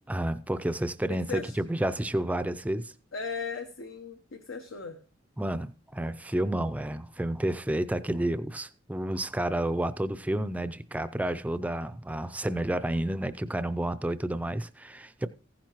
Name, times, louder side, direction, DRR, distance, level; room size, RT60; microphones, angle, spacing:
voice 1, 0.1-2.9 5.4-15.3, right 1 dB, 10° right, 0.4 m, -30 dB
voice 2, 1.1-1.6 3.1-5.0, left 5 dB, 85° left, 0.9 m, -37 dB
15.5 x 10.5 x 3.0 m
head